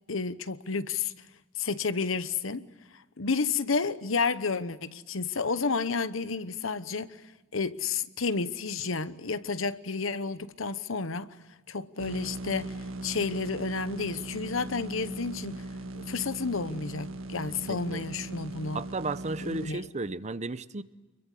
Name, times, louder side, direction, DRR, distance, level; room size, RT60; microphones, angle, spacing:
voice 1, 0.1-1.1 1.6-2.7 3.2-7.2 7.5-11.3 11.7-12.8 13.0-15.6 15.9-18.8 19.4-19.9, left 4 dB, 75° left, 1.1 m, -31 dB
sound 1, 12.0-19.7, right 2 dB, 85° right, 1.8 m, -39 dB
voice 2, 17.7-18.0 18.7-20.8, right 3 dB, 35° right, 0.8 m, -34 dB
28.5 x 22.5 x 8.3 m
head